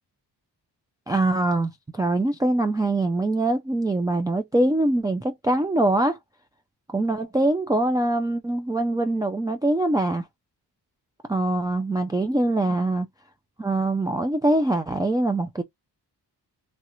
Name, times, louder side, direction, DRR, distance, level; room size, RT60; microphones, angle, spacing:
voice 1, 1.1-6.2 6.9-10.2 11.3-13.1 13.6-15.6, right 2 dB, 10° right, 0.3 m, -23 dB
3.2 x 2.4 x 2.9 m
wide cardioid pair, 100°, 41 cm